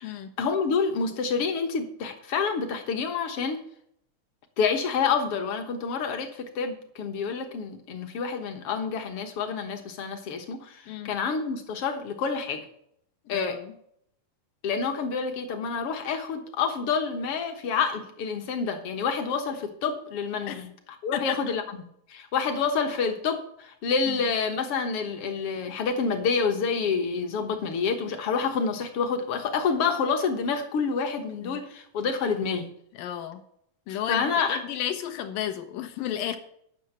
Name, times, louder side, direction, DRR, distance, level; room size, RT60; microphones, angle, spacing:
voice 1, 0.0-3.6 4.6-12.6 13.3-13.6 14.6-20.7 21.0-21.6 22.1-32.7 33.9-34.6, left 5 dB, 60° left, 5 dB, 1.6 m, -28 dB
voice 2, 13.3-13.7 20.5-20.6 21.1-21.4 24.1-24.3 31.4-31.6 33.0-33.4 33.9-36.4, left 10 dB, 75° left, 8 dB, 2.6 m, -33 dB
9.9 x 6.4 x 7.9 m, 0.70 s
omnidirectional pair, 4.1 m